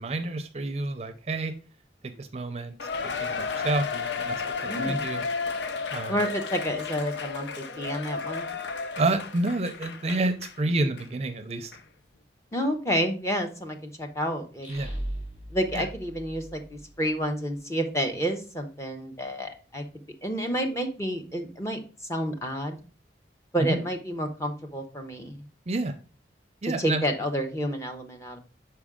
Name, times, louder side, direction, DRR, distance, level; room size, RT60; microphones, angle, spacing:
voice 1, 0.0-1.5 2.0-2.8 3.0-5.2 5.9-6.1 9.0-11.7 14.7-14.9 15.7-15.8 23.6-23.8 25.7-25.9 26.6-27.0, right 2 dB, 35° right, 8 dB, 0.5 m, -29 dB
Cheering, 2.8-10.6 11.0-11.1 11.7-11.8, left 5 dB, 80° left, 0.5 m, -33 dB
voice 2, 4.6-5.0 6.1-8.5 12.5-14.7 15.5-19.8 20.2-21.8 22.1-22.8 23.5-25.4 26.6-28.4, equal, 15° left, 4 dB, 0.7 m, -29 dB
sound 1, 14.6-17.3, right 1 dB, 40° left, 3.5 m, -37 dB
6.1 x 4.6 x 3.6 m, 0.37 s
head